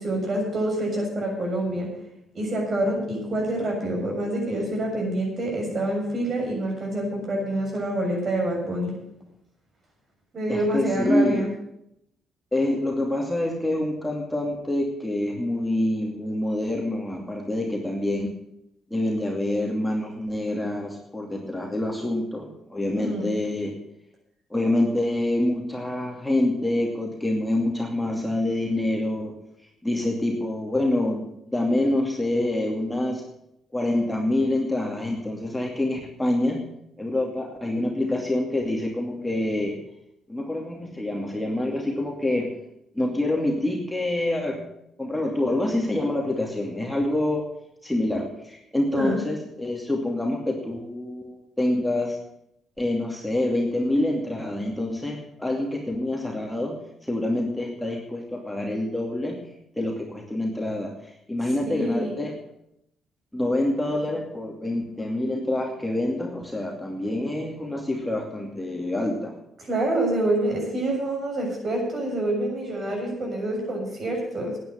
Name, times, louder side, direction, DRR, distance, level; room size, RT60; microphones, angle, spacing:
voice 1, 0.0-1.9 2.3-8.9 10.3-11.5 23.0-23.4 49.0-49.2 61.7-62.2 69.6-74.6, right 1 dB, 45° right, 0 dB, 6.9 m, -27 dB
voice 2, 10.5-11.5 12.5-18.3 18.9-23.8 24.5-29.4 29.8-33.2 33.7-36.7 37.0-39.8 40.3-42.5 42.9-44.6 45.0-47.5 47.8-52.2 52.8-59.5 59.8-62.3 63.3-69.3, left 1 dB, 5° left, 0 dB, 2.5 m, -26 dB
10.5 x 9.6 x 9.4 m, 0.79 s
cardioid pair, 90°, 0 cm